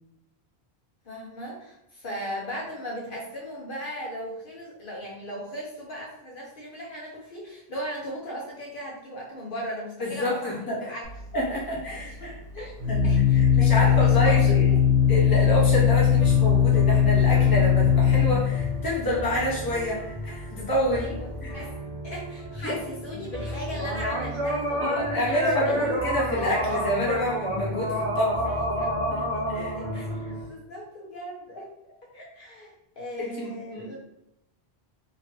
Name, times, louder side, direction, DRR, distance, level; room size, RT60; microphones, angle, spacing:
voice 1, 1.1-11.1 11.9-14.6 21.0-21.7 22.0-26.0 28.4-31.7 32.1-34.0, equal, 60° left, -3 dB, 0.8 m, -38 dB
voice 2, 10.0-10.9 11.3-12.3 12.9-13.0 13.3-14.7 15.1-21.1 22.6-22.7 24.8-28.4 29.1-29.2 29.5-29.7 33.2-33.8, equal, 20° left, -5 dB, 0.8 m, -28 dB
Organ, 11.0-21.5, left 8 dB, 60° right, 1.2 m, -21 dB
sound 1, 16.2-30.5, equal, 35° right, 0.6 m, -31 dB
2.8 x 2.8 x 3.0 m, 0.81 s
omnidirectional pair, 1.1 m